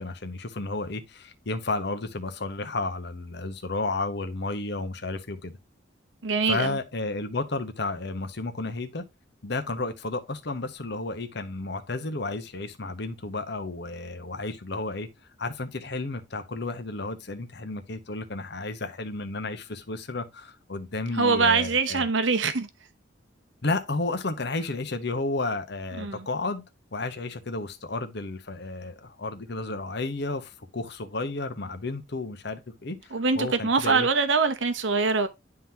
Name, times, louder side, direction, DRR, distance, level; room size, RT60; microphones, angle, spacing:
voice 1, 0.0-5.6 6.5-9.0 9.4-15.1 15.4-22.1 23.6-26.6 26.9-34.1, left 2 dB, 60° left, 1.1 m, -32 dB
voice 2, 6.2-6.8 21.1-22.7 26.0-26.3 33.1-35.3, right 4 dB, 80° right, 0.9 m, -23 dB
11.0 x 3.9 x 2.8 m
head